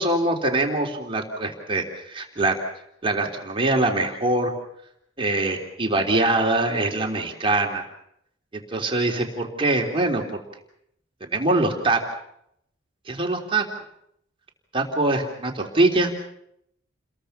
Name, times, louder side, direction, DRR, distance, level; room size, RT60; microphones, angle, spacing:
voice 1, 0.0-2.6 3.0-4.5 5.2-7.9 8.5-10.4 11.3-12.0 13.1-13.6 14.7-16.1, right 2 dB, 25° right, 1 dB, 3.5 m, -23 dB
29.5 x 22.0 x 5.8 m, 0.74 s
head